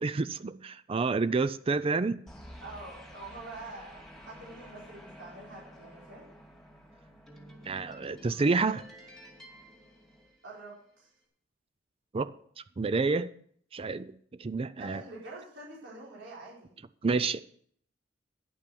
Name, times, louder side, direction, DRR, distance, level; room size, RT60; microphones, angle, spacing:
voice 1, 0.0-2.2 7.6-8.8 12.1-12.3 12.6-13.3 13.7-14.1 14.4-15.0 17.0-17.4, right 4 dB, 30° right, 0.4 m, -29 dB
sound 1, 2.3-10.8, equal, ahead, 2.5 m, -51 dB
voice 2, 2.6-6.3 10.4-11.1 14.8-16.7, right 2 dB, 75° right, 4.7 m, -46 dB
10.5 x 8.5 x 6.9 m
head